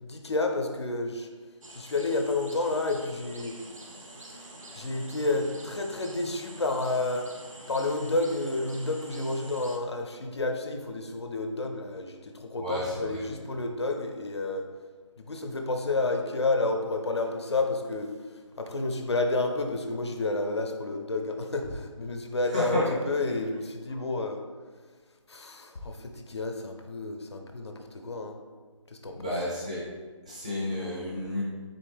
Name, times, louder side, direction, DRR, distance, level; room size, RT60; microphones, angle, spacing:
voice 1, 0.0-1.3 1.7-3.9 4.1-4.4 4.7-7.3 7.7-14.6 15.2-18.1 18.6-22.8 23.1-24.4 25.3-28.4 28.9-29.3, left 2 dB, 55° left, 4 dB, 0.5 m, -30 dB
sound 1, 1.6-9.8, right 1 dB, 80° right, 0.7 m, -47 dB
voice 2, 12.6-13.2 22.4-22.9 29.2-29.8 30.2-31.4, left 1 dB, 10° right, -9 dB, 0.5 m, -30 dB
4.1 x 3.3 x 3.2 m, 1.4 s
figure-of-eight pair, 165°, 17 cm